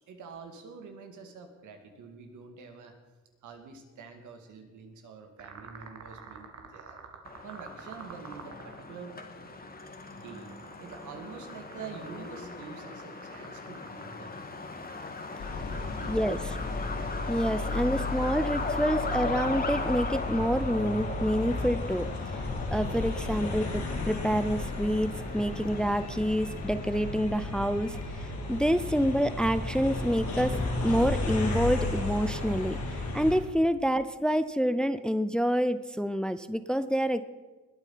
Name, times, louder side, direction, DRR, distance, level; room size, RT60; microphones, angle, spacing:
voice 1, 0.1-2.9 3.4-7.0 7.4-9.2 10.1-14.3 15.5-16.2, right 5 dB, 80° right, 5 dB, 2.4 m, -46 dB
sound 1, 5.4-18.6, right 5 dB, 60° right, 2.2 m, -50 dB
Truck, 7.2-27.2, left 3 dB, 30° left, 1.9 m, -38 dB
sound 2, 15.4-33.4, left 2 dB, 70° left, 4.0 m, -34 dB
voice 2, 16.1-16.4 17.3-22.1 22.3-22.4 22.7-28.0 28.5-37.2, equal, 5° left, 12 dB, 0.6 m, -28 dB
20.0 x 8.9 x 5.8 m, 1.3 s
cardioid pair, 90°, 30 cm